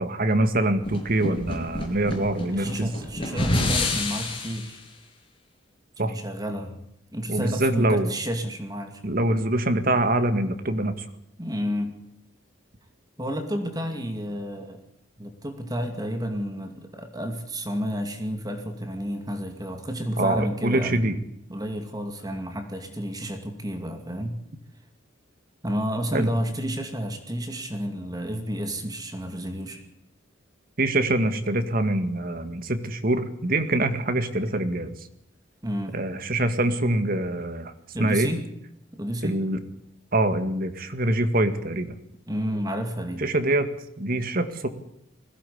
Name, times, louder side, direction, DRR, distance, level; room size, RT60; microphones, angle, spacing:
voice 1, 0.0-2.9 6.0-6.1 7.3-8.1 9.0-10.9 20.2-21.2 26.1-26.3 30.8-34.9 35.9-37.7 38.0-38.3 39.2-39.6 40.1-42.0 43.2-43.7 44.0-44.7, right 1 dB, 45° right, 9 dB, 2.0 m, -24 dB
sound 1, 0.8-4.7, left 2 dB, 30° left, 6.3 m, -28 dB
voice 2, 2.5-4.8 6.0-6.8 7.1-9.0 11.4-12.0 13.2-14.8 15.2-21.0 21.5-24.4 25.6-29.8 35.6-36.0 37.9-38.5 38.9-39.4 42.3-43.3, equal, 20° right, 5 dB, 2.4 m, -31 dB
20.5 x 17.0 x 8.6 m, 0.76 s
head